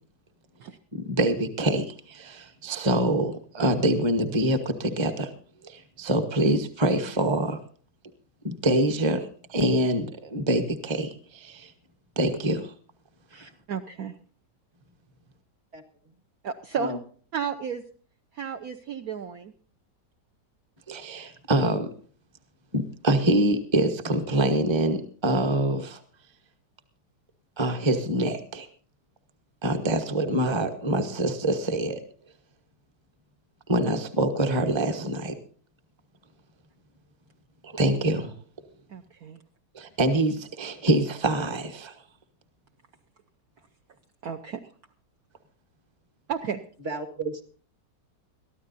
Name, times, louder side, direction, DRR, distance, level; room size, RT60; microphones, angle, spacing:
voice 1, 0.9-5.3 5.6-7.6 8.4-11.7 12.2-12.7 20.9-21.9 22.7-26.0 27.6-28.7 29.6-32.0 33.7-35.4 37.6-38.3 39.7-41.9, right 1 dB, 20° right, 7 dB, 1.1 m, -25 dB
voice 2, 13.3-14.1 16.4-16.9 17.3-17.8 18.3-19.5 38.9-39.4 44.2-44.6 46.3-46.6, right 7 dB, 60° right, 5 dB, 1.2 m, -33 dB
voice 3, 46.9-47.4, right 2 dB, 35° right, 6 dB, 1.9 m, -32 dB
22.5 x 14.0 x 2.7 m, 0.44 s
omnidirectional pair, 1.9 m